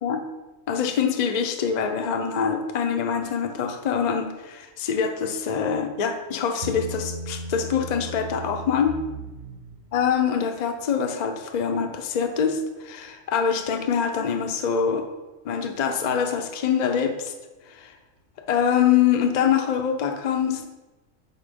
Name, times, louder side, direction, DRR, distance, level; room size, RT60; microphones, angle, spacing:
voice 1, 0.7-9.0 9.9-15.0 15.4-17.3 17.7-17.9 18.5-20.7, left 7 dB, 55° left, 5 dB, 0.4 m, -24 dB
Bass guitar, 6.6-10.0, right 1 dB, 55° right, 1.0 m, -36 dB
5.6 x 4.5 x 5.1 m, 1.2 s
omnidirectional pair, 1.5 m